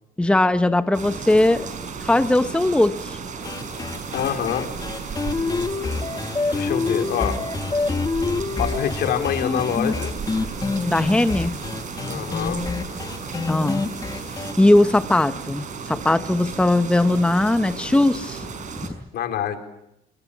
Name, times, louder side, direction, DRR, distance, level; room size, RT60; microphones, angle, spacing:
voice 1, 0.2-1.7 2.0-3.2 10.9-11.5 13.5-13.8 14.6-18.5, left 1 dB, 5° left, 10 dB, 1.0 m, -19 dB
sound 1, 0.9-18.9, right 5 dB, 45° right, 5.7 m, -34 dB
sound 2, 3.4-14.5, left 4 dB, 20° left, 1.7 m, -27 dB
voice 2, 4.1-4.7 6.5-7.4 8.6-10.1 12.1-12.6 19.1-19.6, left 9 dB, 70° left, 6 dB, 4.3 m, -25 dB
27.0 x 22.0 x 7.2 m, 0.83 s
cardioid pair, 110°, 17 cm